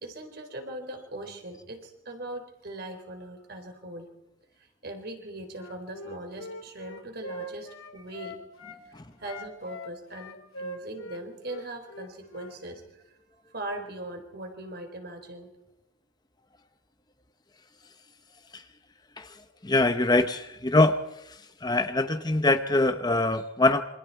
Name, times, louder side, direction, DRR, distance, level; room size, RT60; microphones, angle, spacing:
voice 1, 0.0-4.1 4.6-8.4 9.2-13.2 13.4-15.5, right 1 dB, 50° right, 5 dB, 3.8 m, -40 dB
Wind instrument woodwind instrument, 5.5-8.8 9.2-12.6, equal, 70° left, 3.0 m, -42 dB
voice 2, 19.6-21.0 21.6-23.8, left 2 dB, 20° left, 9 dB, 0.8 m, -23 dB
27.5 x 25.0 x 4.6 m, 0.84 s
head